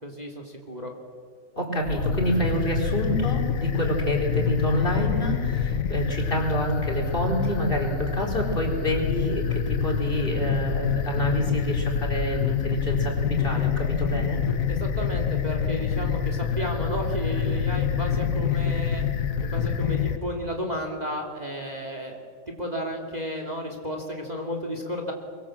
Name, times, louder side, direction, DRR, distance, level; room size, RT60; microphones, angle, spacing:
voice 1, 0.0-0.9 14.7-19.0 19.4-22.2 22.6-25.1, equal, 20° right, 2 dB, 2.4 m, -32 dB
voice 2, 1.6-14.4, right 1 dB, 30° left, 1 dB, 4.6 m, -28 dB
sound 1, 1.8-20.2, left 7 dB, 55° left, 1.3 m, -26 dB
23.0 x 23.0 x 7.6 m, 2.1 s
omnidirectional pair, 2.0 m